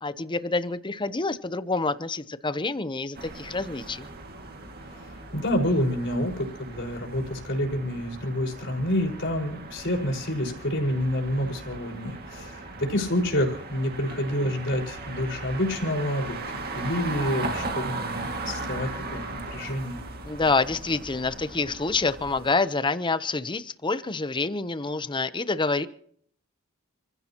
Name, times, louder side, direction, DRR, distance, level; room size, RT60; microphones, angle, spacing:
voice 1, 0.0-4.1 20.2-25.9, left 3 dB, 20° left, 13 dB, 0.8 m, -27 dB
sound 1, 3.1-22.5, right 3 dB, 45° right, 2.2 m, -38 dB
voice 2, 4.9-20.0, left 1 dB, 55° left, 0 dB, 5.2 m, -28 dB
29.0 x 15.5 x 3.0 m, 0.63 s
head